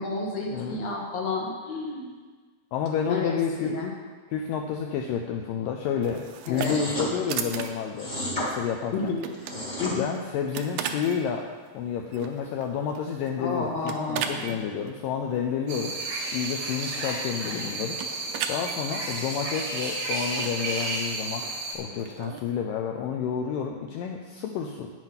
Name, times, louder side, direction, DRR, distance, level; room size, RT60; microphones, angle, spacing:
voice 1, 0.0-2.0 3.1-3.3 3.6-3.9 6.5-6.8 8.9-9.2 9.8-10.0 13.4-14.6, left 3 dB, 65° left, -1 dB, 1.7 m, -30 dB
voice 2, 2.7-3.8 4.3-8.1 8.4-9.1 10.0-11.5 11.7-16.0 16.3-18.0 18.5-21.4 21.7-24.9, left 7 dB, 85° left, 2 dB, 2.0 m, -30 dB
sound 1, 6.0-22.5, right 8 dB, 85° right, 2.6 m, -39 dB
sound 2, 6.5-7.1 8.0-8.5 9.3-9.9, left 1 dB, 30° left, 0.8 m, -31 dB
sound 3, 15.7-21.7, right 2 dB, 65° right, 1.4 m, -32 dB
9.0 x 7.9 x 5.7 m, 1.4 s
omnidirectional pair, 4.6 m